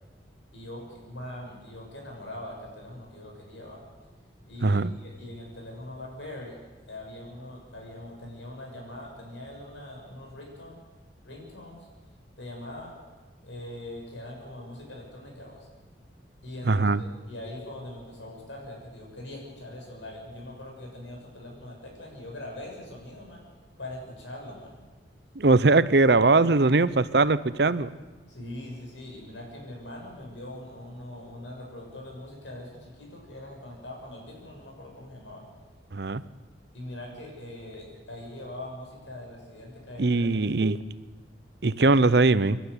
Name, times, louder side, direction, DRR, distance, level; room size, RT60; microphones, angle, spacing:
voice 1, 0.5-3.8 4.4-6.6 6.8-10.8 11.2-11.9 12.4-12.9 13.4-15.7 16.4-23.4 23.8-24.8 28.3-35.4 36.7-40.5, left 1 dB, 90° left, -1 dB, 6.8 m, -42 dB
voice 2, 4.6-5.0 16.6-17.0 25.3-28.0 35.9-36.2 40.0-40.8 41.6-42.6, right 3 dB, 65° right, 16 dB, 0.8 m, -21 dB
26.0 x 12.5 x 9.8 m, 1.2 s
head